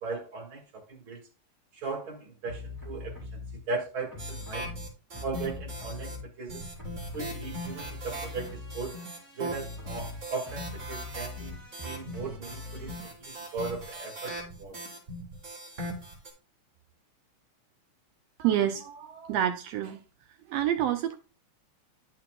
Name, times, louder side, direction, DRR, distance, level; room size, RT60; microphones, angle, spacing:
voice 1, 0.0-0.6 0.9-1.2 1.8-3.1 3.7-4.7 5.2-6.6 7.1-9.0 9.4-11.6 11.8-12.9 13.5-14.3 14.6-14.8, right 4 dB, 45° right, 2.5 m, -37 dB
sound 1, 2.5-3.6 4.1-6.5 6.8-13.1, left 3 dB, 5° left, 3.8 m, -42 dB
sound 2, 4.2-6.2 6.5-16.3, right 1 dB, 25° right, 2.3 m, -40 dB
voice 2, 18.4-20.0 20.5-21.2, right 11 dB, 80° right, 1.5 m, -28 dB
11.0 x 5.8 x 2.2 m
omnidirectional pair, 3.4 m